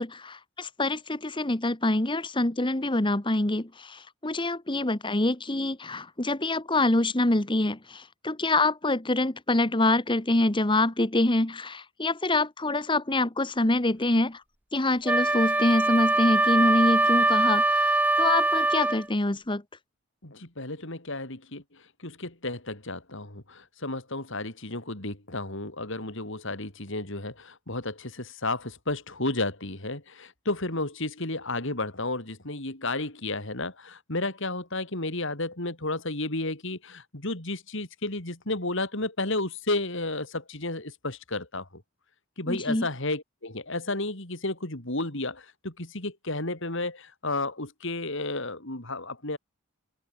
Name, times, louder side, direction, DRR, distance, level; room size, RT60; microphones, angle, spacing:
voice 1, 0.0-14.4 14.7-19.6 42.5-42.9, left 2 dB, 25° left, 1.4 m, -25 dB
Wind instrument woodwind instrument, 15.1-19.0, right 2 dB, 5° right, 0.5 m, -23 dB
voice 2, 20.2-41.8 42.4-49.4, left 2 dB, 60° left, 4.5 m, -32 dB
open air
head